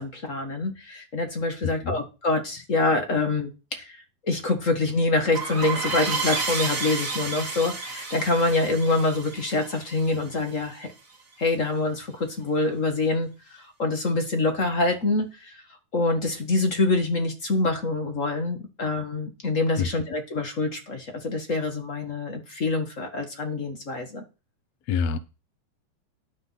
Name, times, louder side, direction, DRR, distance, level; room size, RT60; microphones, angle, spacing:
voice 1, 0.0-10.9 11.4-15.6 15.9-24.2, left 2 dB, 35° left, 1.4 m, -26 dB
voice 2, 1.6-2.0 19.8-19.9 24.9-25.2, left 6 dB, 70° left, 1.8 m, -26 dB
sound 1, 5.3-10.7, right 4 dB, 30° right, 2.2 m, -31 dB
11.5 x 6.8 x 5.8 m
omnidirectional pair, 3.5 m